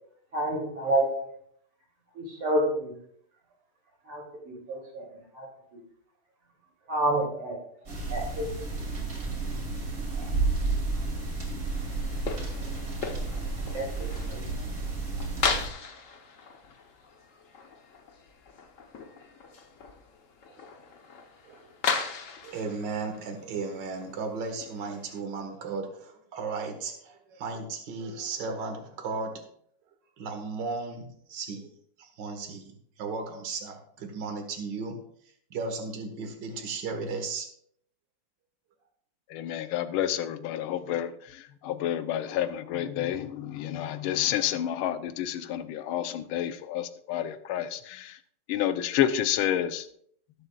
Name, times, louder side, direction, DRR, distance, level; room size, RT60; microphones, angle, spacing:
voice 1, 0.3-1.3 2.1-2.9 4.0-5.8 6.9-7.6 7.9-8.5 8.7-8.8 10.1-10.4 13.7-14.6, right 1 dB, 85° right, -1 dB, 3.7 m, -30 dB
sound 1, 7.9-15.7, right 3 dB, 40° right, 3.1 m, -31 dB
sound 2, 11.7-25.2, left 5 dB, 50° left, 1.1 m, -37 dB
voice 2, 22.4-29.4 30.2-31.7 32.0-35.0 35.5-37.5, right 4 dB, 55° right, 4 dB, 2.1 m, -35 dB
voice 3, 39.3-41.1 41.6-48.1 48.5-49.8, left 11 dB, 80° left, 11 dB, 1.5 m, -29 dB
18.5 x 7.9 x 2.4 m, 0.66 s
omnidirectional pair, 2.4 m